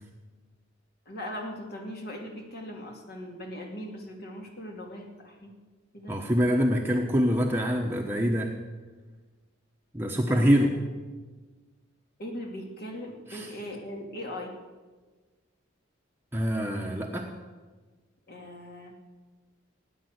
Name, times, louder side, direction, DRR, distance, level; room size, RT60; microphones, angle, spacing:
voice 1, 1.1-5.5 5.9-6.1 10.3-10.5 12.2-14.5 18.3-18.9, left 1 dB, 50° left, 1 dB, 2.6 m, -39 dB
voice 2, 6.1-8.5 9.9-10.8 13.3-13.5 16.3-17.3, equal, 10° right, 0 dB, 1.1 m, -25 dB
18.0 x 9.7 x 8.1 m, 1.3 s
head